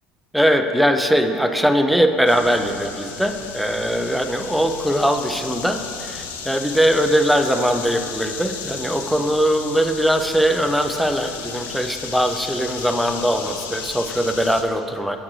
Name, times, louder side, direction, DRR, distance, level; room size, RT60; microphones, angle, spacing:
voice 1, 0.3-15.2, equal, ahead, 6 dB, 0.5 m, -20 dB
sound 1, 2.3-14.6, left 6 dB, 85° left, 0.5 m, -34 dB
7.7 x 7.1 x 3.2 m, 2.7 s
hypercardioid pair, 75°, 0 cm